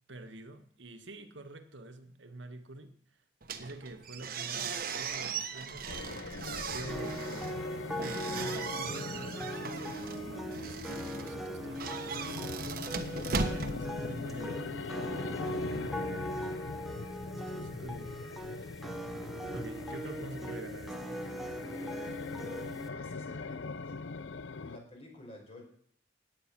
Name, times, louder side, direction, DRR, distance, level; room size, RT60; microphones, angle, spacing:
voice 1, 0.1-2.9 3.6-7.3 8.0-11.9 13.5-14.8 15.4-16.5 17.3-18.2 18.4-18.7 19.5-21.2, right 2 dB, 85° right, 1.7 m, -47 dB
sound 1, 3.4-14.5, right 5 dB, 50° right, 1.3 m, -39 dB
sound 2, 5.9-24.8, left 4 dB, 80° left, 0.7 m, -41 dB
sound 3, 6.9-22.9, equal, ahead, 1.5 m, -40 dB
voice 2, 12.9-14.3 21.6-22.0 22.4-23.9 24.6-25.6, left 2 dB, 35° left, 5.1 m, -52 dB
17.5 x 9.3 x 6.1 m
head